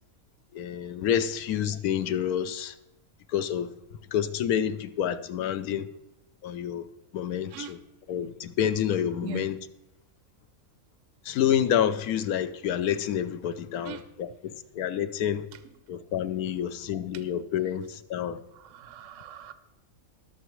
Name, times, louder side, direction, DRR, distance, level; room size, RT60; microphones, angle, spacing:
voice 1, 0.5-2.8 3.3-3.7 4.1-5.9 6.4-6.9 7.1-7.8 8.1-9.5 11.2-15.5 15.9-18.4, left 9 dB, 85° left, 1.2 m, -28 dB
voice 2, 7.4-7.8 9.2-9.5 13.8-14.0 15.5-15.8 16.5-16.6 17.1-17.2 18.5-19.5, right 5 dB, 65° right, 0.9 m, -41 dB
20.0 x 6.9 x 3.1 m
omnidirectional pair, 1.5 m